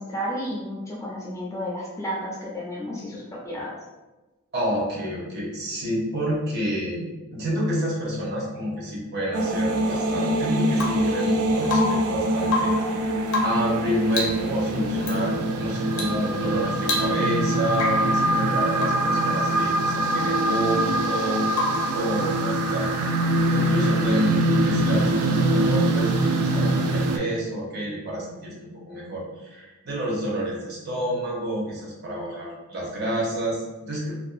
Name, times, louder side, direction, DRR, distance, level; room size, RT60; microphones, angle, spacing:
voice 1, 0.0-3.8, equal, 15° left, -5 dB, 0.3 m, -32 dB
voice 2, 4.5-21.5 21.9-23.0 23.5-34.1, equal, 45° right, -4 dB, 0.6 m, -29 dB
sound 1, 9.3-27.2, right 1 dB, 80° right, 0.3 m, -23 dB
Rain / Water tap faucet / Drip, 10.7-11.1 11.6-12.1 12.4-12.9 13.3-13.7 14.1-14.5 15.0-15.2 15.9-16.2 16.5-16.6 16.8-17.4 17.7-18.1 18.8-19.1 21.5-22.0 23.9-24.0, left 3 dB, 90° left, 0.6 m, -29 dB
2.6 x 2.1 x 2.4 m, 1.1 s
head